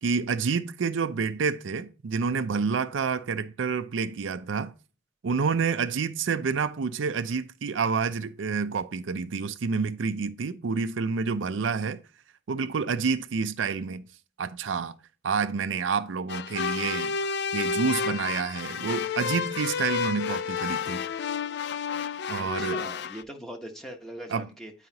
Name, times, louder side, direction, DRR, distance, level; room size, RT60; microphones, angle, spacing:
voice 1, 0.0-4.7 5.2-12.0 12.5-14.1 14.4-15.0 15.2-17.1 17.5-21.0 22.3-22.8 24.3-24.4, right 5 dB, 75° right, 0.5 m, -28 dB
sound 1, 16.3-23.2, left 6 dB, 60° left, 0.4 m, -30 dB
voice 2, 22.3-24.9, equal, ahead, 1.0 m, -41 dB
9.4 x 4.8 x 2.8 m
head